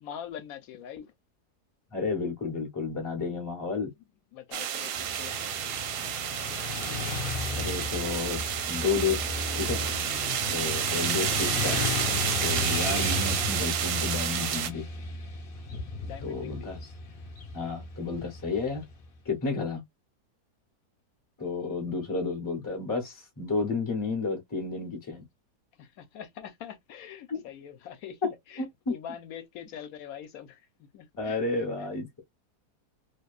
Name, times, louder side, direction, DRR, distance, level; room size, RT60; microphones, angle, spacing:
voice 1, 0.0-1.1 4.3-5.4 10.5-10.7 16.0-16.7 19.4-19.5 25.8-31.4 31.8-31.9, left 9 dB, 65° left, 1.1 m, -44 dB
voice 2, 1.9-3.9 7.5-9.2 9.5-9.8 10.5-11.9 12.2-14.9 16.2-16.9 17.5-18.8 19.2-19.8 21.4-25.2 27.3-27.4 28.6-29.0 31.2-32.2, left 4 dB, 20° left, 0.6 m, -31 dB
sound 1, 4.5-14.7, right 9 dB, 75° right, 1.1 m, -30 dB
Motorcycle / Traffic noise roadway noise, 4.9-19.1, left 4 dB, 45° left, 0.8 m, -35 dB
2.8 x 2.3 x 2.3 m
omnidirectional pair, 1.7 m